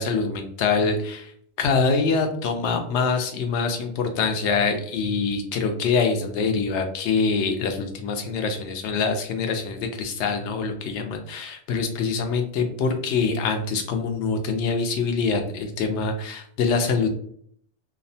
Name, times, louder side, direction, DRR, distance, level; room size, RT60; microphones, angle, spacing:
voice 1, 0.0-1.3 1.6-17.1, left 4 dB, 80° left, 6 dB, 0.9 m, -24 dB
2.7 x 2.0 x 2.6 m, 0.64 s
omnidirectional pair, 1.2 m